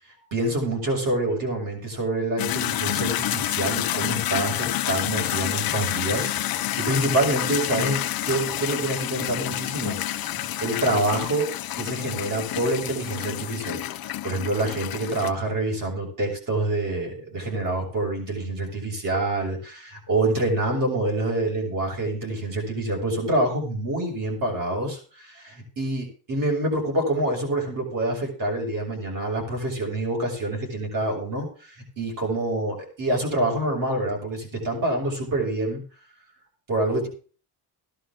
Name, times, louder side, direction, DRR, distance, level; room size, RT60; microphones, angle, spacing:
voice 1, 0.3-11.5 11.7-35.8 36.7-37.1, right 2 dB, 50° right, 0 dB, 6.5 m, -27 dB
sound 1, 2.4-15.3, left 13 dB, 55° left, 0.7 m, -28 dB
15.5 x 11.5 x 3.7 m, 0.39 s
cardioid pair, 180°, 42 cm